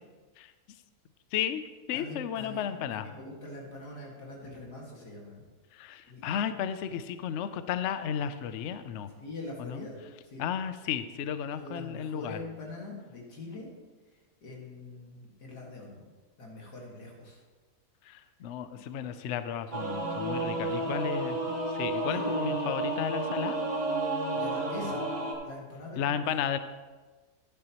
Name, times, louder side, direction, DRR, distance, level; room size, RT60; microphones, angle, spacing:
voice 1, 1.3-1.6 1.9-3.1 5.7-9.1 9.6-9.9 10.4-12.4 18.1-21.4 21.7-23.6 26.0-26.6, left 8 dB, 70° left, 11 dB, 0.7 m, -33 dB
voice 2, 1.9-5.3 6.1-6.2 9.2-10.0 10.3-10.4 11.5-13.7 14.4-16.0 16.4-17.4 20.7-20.9 22.1-22.4 24.3-25.1 25.4-26.1, left 2 dB, 85° left, -2 dB, 2.6 m, -43 dB
Singing / Musical instrument, 19.7-25.3, right 2 dB, 25° right, 1.7 m, -31 dB
11.5 x 9.6 x 3.0 m, 1.3 s
omnidirectional pair, 1.7 m